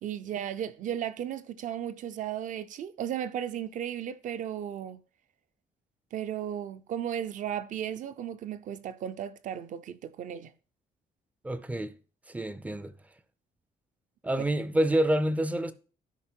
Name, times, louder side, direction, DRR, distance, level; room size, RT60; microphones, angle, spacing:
voice 1, 0.0-5.0 6.1-10.5, right 10 dB, 55° right, 0.6 m, -35 dB
voice 2, 11.4-11.9 12.3-12.9 14.2-15.7, right 1 dB, 10° right, 0.4 m, -27 dB
12.0 x 5.2 x 4.5 m
cardioid pair, 170°, 16 cm